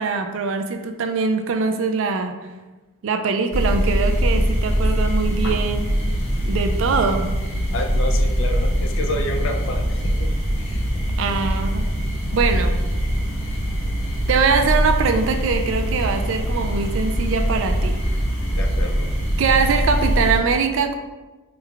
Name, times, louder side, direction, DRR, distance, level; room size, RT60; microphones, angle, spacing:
voice 1, 0.0-2.4 3.0-5.9 6.4-7.3 11.2-11.8 12.3-12.8 14.3-18.0 19.4-21.0, right 5 dB, 65° right, 6 dB, 0.4 m, -22 dB
sound 1, 3.5-20.4, equal, 30° left, 1.3 m, -22 dB
voice 2, 7.7-10.9 18.5-19.2, left 1 dB, 65° left, 4 dB, 0.4 m, -30 dB
4.3 x 3.0 x 2.4 m, 1.2 s
head